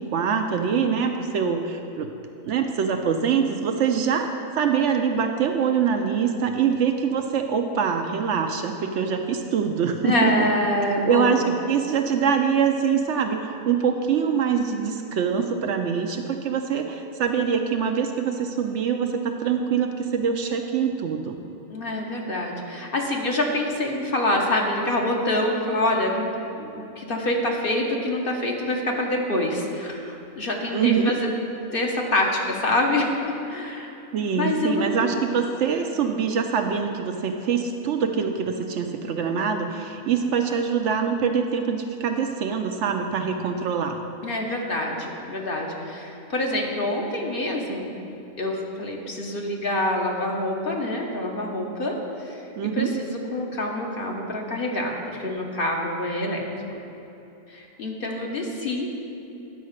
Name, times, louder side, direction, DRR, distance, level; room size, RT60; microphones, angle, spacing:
voice 1, 0.0-2.1 2.4-4.3 4.5-10.5 11.1-21.4 30.7-31.2 34.1-44.0 52.6-52.9, right 6 dB, 70° right, 5 dB, 0.8 m, -24 dB
voice 2, 10.0-11.5 21.7-31.3 31.7-33.1 33.5-33.9 34.2-35.1 44.2-47.9 48.4-56.4 57.5-58.9, left 1 dB, 45° left, 0 dB, 1.0 m, -26 dB
10.0 x 4.7 x 6.5 m, 2.9 s
omnidirectional pair, 1.4 m